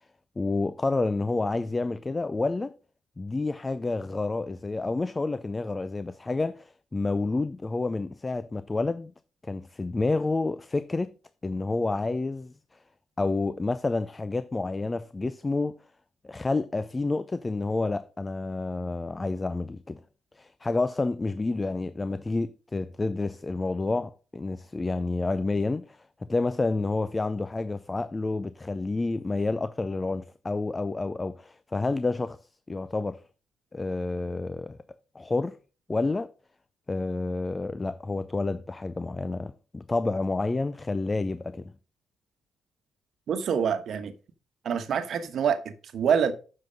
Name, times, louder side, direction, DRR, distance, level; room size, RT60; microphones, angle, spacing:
voice 1, 0.4-2.7 3.2-9.1 9.4-11.1 11.4-12.5 13.2-15.8 16.2-20.0 20.4-32.4 32.7-33.2 33.7-34.8 35.1-35.6 35.9-36.3 36.9-41.7, left 3 dB, 20° left, 0.4 m, -29 dB
voice 2, 43.3-44.1 44.6-46.3, right 7 dB, 60° right, 1.2 m, -26 dB
7.5 x 5.9 x 5.3 m
cardioid pair, 90°, 0 cm